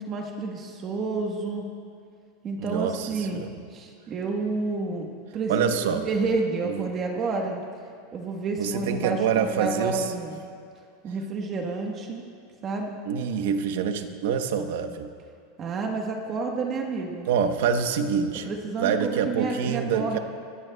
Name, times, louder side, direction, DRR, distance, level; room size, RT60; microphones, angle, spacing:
voice 1, 0.0-1.7 2.4-3.4 3.7-7.6 8.1-10.4 11.0-12.2 12.6-13.0 15.6-17.3 18.4-20.2, right 3 dB, 30° right, 1 dB, 1.2 m, -30 dB
voice 2, 2.6-3.5 5.5-6.1 6.6-6.9 8.6-10.1 13.1-15.1 17.3-18.5 18.8-20.2, right 7 dB, 75° right, 8 dB, 0.9 m, -26 dB
22.0 x 14.0 x 2.3 m, 2.2 s
supercardioid pair, 140°, 0 cm